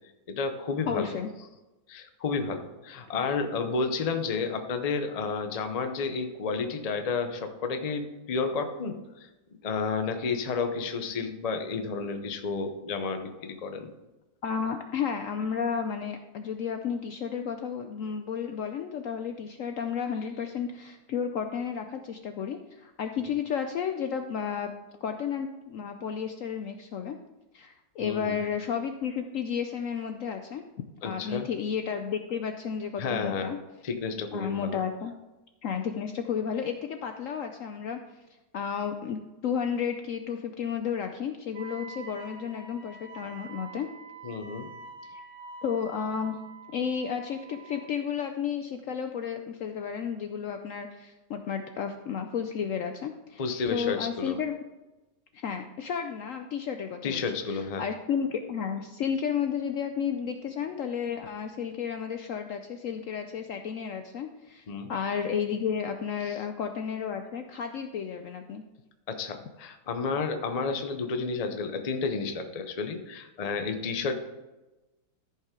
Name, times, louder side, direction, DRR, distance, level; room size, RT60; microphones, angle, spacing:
voice 1, 0.3-1.1 1.9-9.3 9.6-13.9 28.0-28.4 31.0-31.5 33.0-33.5 33.8-34.8 44.2-44.7 53.4-54.4 57.0-57.8 64.7-64.9 66.2-66.4 69.1-74.1, left 4 dB, 40° left, 7 dB, 0.5 m, -31 dB
voice 2, 0.9-1.3 14.4-24.7 25.0-27.2 27.5-30.6 31.0-33.6 34.3-35.1 35.6-38.0 38.5-43.9 45.1-45.2 45.6-46.4 46.7-54.6 55.4-68.6, left 7 dB, 70° left, 6 dB, 0.8 m, -32 dB
Wind instrument woodwind instrument, 41.5-48.0, right 4 dB, 90° right, 1.7 m, -46 dB
14.0 x 5.6 x 3.7 m, 1.1 s
omnidirectional pair, 1.8 m